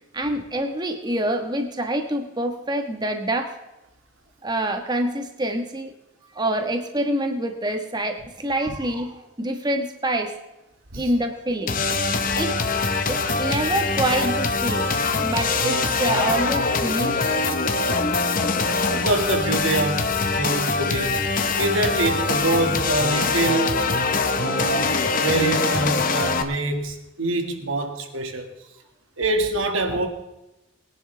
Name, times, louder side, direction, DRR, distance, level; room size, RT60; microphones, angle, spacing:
voice 1, 0.1-3.6 4.4-5.9 6.3-10.3 11.0-11.8 12.3-12.6 13.1-14.9 15.2-17.4, right 1 dB, 20° right, 1.4 m, -26 dB
sound 1, 11.7-26.4, left 3 dB, 40° left, 1.0 m, -23 dB
voice 2, 18.9-21.2 21.6-23.8 24.4-28.5 29.2-30.1, right 2 dB, 75° right, 2.0 m, -25 dB
22.0 x 10.5 x 3.4 m
head